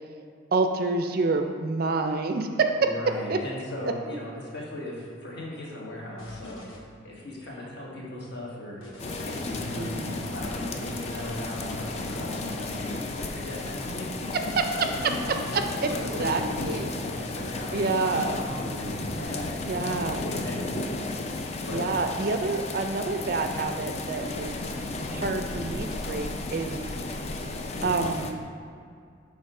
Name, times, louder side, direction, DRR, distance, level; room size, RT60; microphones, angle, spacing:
voice 1, 0.5-2.9 3.3-3.4 9.7-10.1 14.3-15.9 16.2-16.9 17.7-18.4 19.7-20.2 21.7-24.5 25.1-26.9 27.8-28.3, right 3 dB, 45° right, 6 dB, 0.4 m, -27 dB
voice 2, 2.8-6.6 7.0-8.8 9.2-14.3 15.9-17.9 18.1-19.9 20.3-20.5 20.9-21.2 21.6-21.9 26.8-27.0, left 1 dB, 55° left, -4 dB, 1.3 m, -38 dB
sound 1, 6.2-6.8 8.8-12.8 14.8-16.4, left 2 dB, 75° left, 1.1 m, -42 dB
sound 2, 9.0-28.3, left 2 dB, 30° left, 0.4 m, -34 dB
6.6 x 3.5 x 4.8 m, 2.3 s
head